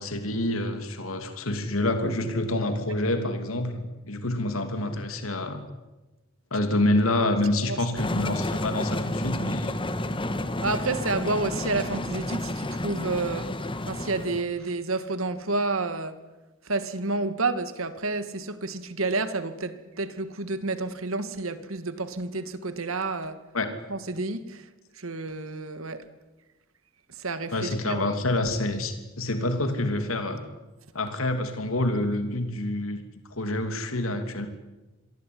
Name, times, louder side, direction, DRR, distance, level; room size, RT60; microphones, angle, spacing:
voice 1, 0.0-5.6 6.5-9.8 23.5-23.7 27.5-30.4 30.9-33.0 33.3-34.5, left 1 dB, 85° left, 7 dB, 3.0 m, -27 dB
sound 1, 8.0-14.4, left 1 dB, 25° left, 1.8 m, -31 dB
voice 2, 10.6-13.5 13.9-16.1 16.7-23.4 23.9-24.6 25.0-26.0 27.2-28.0, right 3 dB, 80° right, 11 dB, 2.3 m, -30 dB
27.5 x 22.5 x 9.6 m, 1.1 s
head